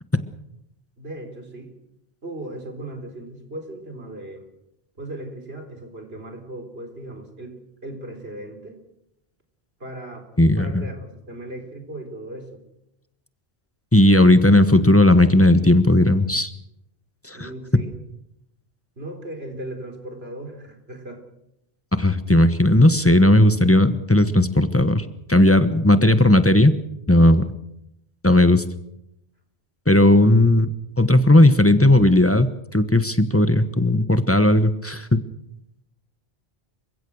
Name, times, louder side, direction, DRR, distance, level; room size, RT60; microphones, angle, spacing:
voice 1, 1.0-1.7 2.2-4.5 5.0-8.8 9.8-12.6 17.3-17.9 19.0-21.2, right 1 dB, 75° right, 5 dB, 4.3 m, -37 dB
voice 2, 10.4-10.8 13.9-16.5 17.3-17.5 22.0-26.7 27.1-27.4 28.2-28.6 29.9-30.7 31.0-35.2, left 1 dB, 15° left, 11 dB, 1.2 m, -16 dB
28.5 x 16.0 x 6.5 m, 0.83 s
omnidirectional pair, 1.1 m